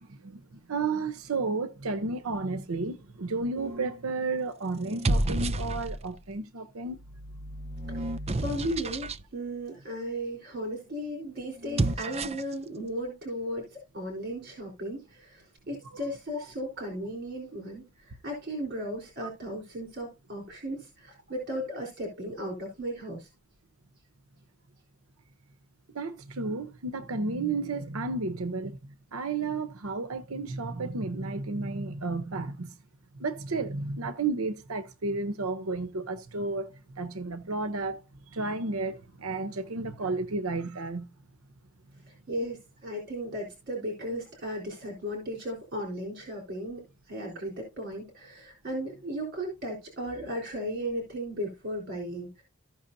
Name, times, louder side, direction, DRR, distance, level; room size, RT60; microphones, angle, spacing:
voice 1, 0.7-7.0 25.9-28.8 29.1-32.7 33.2-38.0 38.3-41.1, right 3 dB, 85° right, 0.9 m, -32 dB
sound 1, 3.6-4.0 4.8-6.2 6.9-9.2 11.6-12.5, right 2 dB, 30° right, 0.5 m, -31 dB
voice 2, 8.4-17.8 18.2-23.3 42.3-46.8 47.1-52.4, equal, 50° right, 4.0 m, -35 dB
15.5 x 6.1 x 2.7 m
head